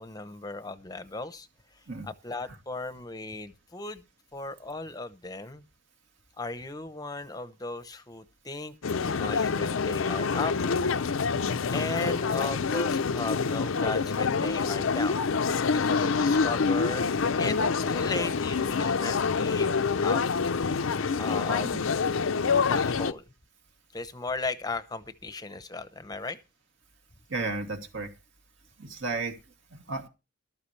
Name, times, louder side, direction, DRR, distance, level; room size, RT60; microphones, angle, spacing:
voice 1, 0.0-1.5 1.7-4.0 4.3-5.6 6.4-10.6 11.7-15.2 15.7-17.1 17.4-17.6 17.9-19.7 20.0-20.2 21.1-21.8 22.7-23.2 23.9-26.4, left 3 dB, 20° left, 0.8 m, -36 dB
sound 1, 8.8-23.1, left 5 dB, 75° left, 0.6 m, -26 dB
voice 2, 27.3-28.1 28.8-29.4 29.7-30.1, right 3 dB, 70° right, 2.3 m, -33 dB
14.0 x 12.5 x 3.2 m
head